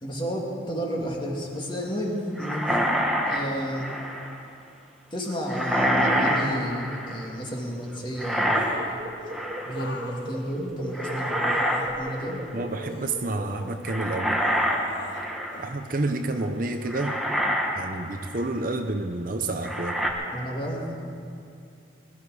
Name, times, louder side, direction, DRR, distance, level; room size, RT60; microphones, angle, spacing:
voice 1, 0.0-2.8 3.3-3.9 5.1-8.6 9.6-12.4 20.3-21.0, equal, 25° left, -1 dB, 2.1 m, -31 dB
sound 1, 2.4-4.3 5.5-7.3 8.2-9.0 9.3-9.8 10.9-11.8 12.2-12.4 13.9-15.7 16.4-16.5 16.9-17.8 18.2-18.4 19.6-20.1, equal, ahead, 1.2 m, -26 dB
sound 2, 7.8-14.2, right 1 dB, 25° right, 1.0 m, -39 dB
sound 3, 8.5-9.1 9.7-12.0 12.7-13.8 14.4-15.2 15.5-15.7, left 1 dB, 65° left, 1.5 m, -40 dB
voice 2, 12.5-14.4 15.6-17.2 17.7-20.0, right 2 dB, 45° right, 6 dB, 0.8 m, -29 dB
21.0 x 12.5 x 4.9 m, 2.5 s
head